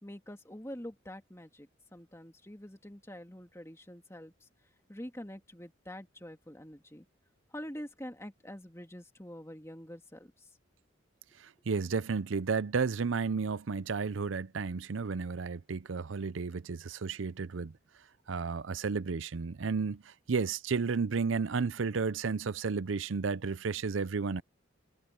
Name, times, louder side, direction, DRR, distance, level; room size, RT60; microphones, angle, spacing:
voice 1, 0.0-4.5 4.9-7.1 7.5-10.5, equal, 15° left, 2.3 m, -46 dB
voice 2, 11.4-17.7 18.3-24.4, right 5 dB, 75° right, 0.6 m, -32 dB
head